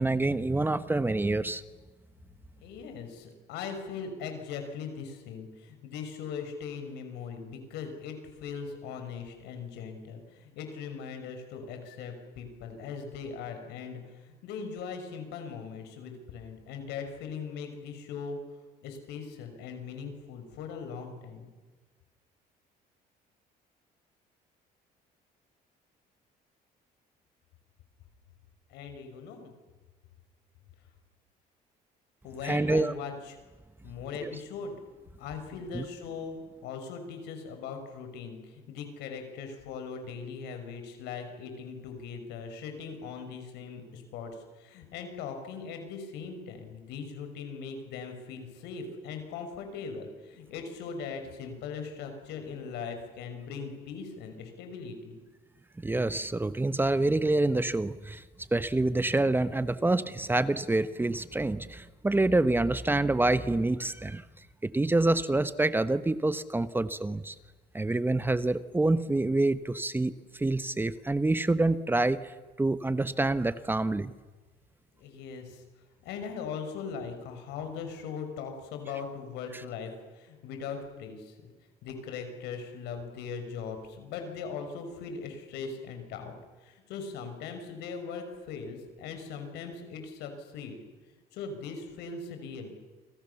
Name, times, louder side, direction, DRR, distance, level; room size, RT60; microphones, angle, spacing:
voice 1, 0.0-1.6 32.4-32.9 34.2-34.3 35.7-35.8 55.8-58.2 58.5-64.2 64.6-67.3 67.7-72.3 72.6-74.1, right 2 dB, 10° right, 13 dB, 1.1 m, -27 dB
voice 2, 2.6-18.4 18.8-21.5 28.7-29.5 32.2-33.4 33.8-34.7 35.2-36.4 36.6-55.2 75.0-75.6 76.0-81.5 81.8-86.3 86.6-90.8 91.3-92.7, left 5 dB, 90° left, 6 dB, 6.4 m, -40 dB
29.5 x 26.0 x 7.1 m, 1.3 s
cardioid pair, 110°, 17 cm